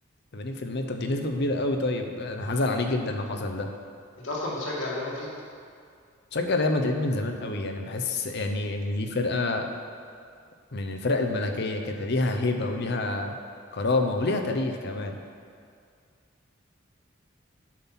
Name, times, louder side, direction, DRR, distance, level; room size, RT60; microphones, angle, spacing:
voice 1, 0.3-3.7 6.3-9.7 10.7-13.3 13.7-15.2, left 2 dB, 55° left, 5 dB, 0.7 m, -27 dB
voice 2, 4.2-5.3, left 2 dB, 85° left, -5 dB, 2.1 m, -31 dB
7.4 x 5.7 x 5.9 m, 2.3 s
head